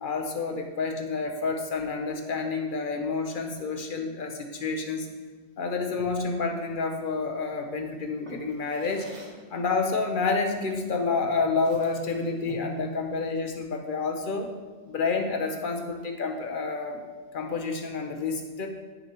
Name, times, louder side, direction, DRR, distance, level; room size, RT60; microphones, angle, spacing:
voice 1, 0.0-5.1 5.6-9.1 9.5-14.5 14.9-17.0 17.3-18.7, left 4 dB, 50° left, 3 dB, 1.0 m, -29 dB
Drawer open or close, 8.2-9.5 10.7-10.9 11.3-12.8, right 3 dB, 80° right, 1.5 m, -47 dB
9.9 x 6.6 x 3.0 m, 1.4 s
omnidirectional pair, 1.1 m